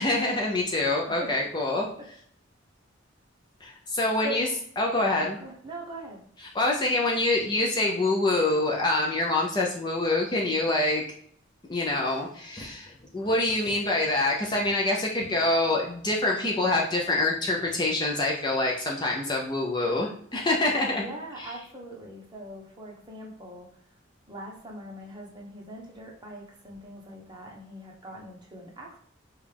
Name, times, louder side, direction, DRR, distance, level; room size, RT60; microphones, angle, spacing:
voice 1, 0.0-1.9 3.6-4.5 4.8-5.4 6.5-11.0 11.7-21.0, left 2 dB, 20° left, -1 dB, 0.5 m, -26 dB
voice 2, 4.2-4.5 5.2-6.3 21.0-23.8 24.3-29.0, right 1 dB, 20° right, -2 dB, 1.0 m, -41 dB
5.1 x 2.3 x 3.3 m, 0.63 s
head